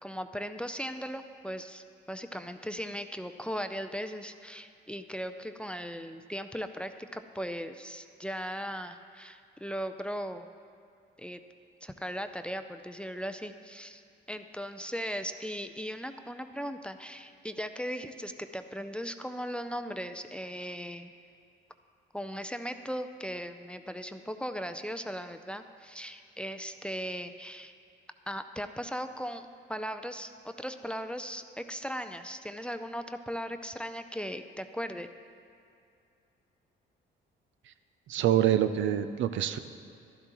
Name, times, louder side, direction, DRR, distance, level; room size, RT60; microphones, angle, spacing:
voice 1, 0.0-10.5 11.2-11.4 11.8-14.0 14.3-21.1 22.1-27.7 28.3-35.1, equal, 5° left, 8 dB, 0.4 m, -38 dB
voice 2, 38.1-39.6, right 11 dB, 75° right, 11 dB, 0.5 m, -26 dB
12.0 x 12.0 x 3.0 m, 2.4 s
cardioid pair, 90°, 20 cm